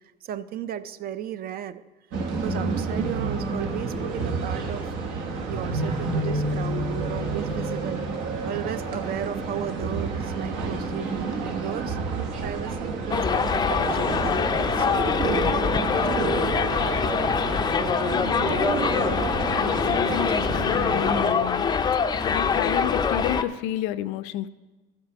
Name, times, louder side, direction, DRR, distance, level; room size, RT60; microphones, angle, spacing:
voice 1, 0.2-1.8 2.3-4.9 5.4-8.0 8.5-12.0 12.4-16.3, right 10 dB, 50° right, 14 dB, 0.5 m, -35 dB
sound 1, 2.1-21.3, right 3 dB, 75° right, 1.3 m, -29 dB
Subway metro underground, 13.1-23.4, left 6 dB, 20° left, 0.4 m, -24 dB
voice 2, 18.0-21.7 22.2-24.5, left 12 dB, 90° left, 14 dB, 0.5 m, -31 dB
12.5 x 7.5 x 4.9 m, 1.2 s
cardioid pair, 120°, 20 cm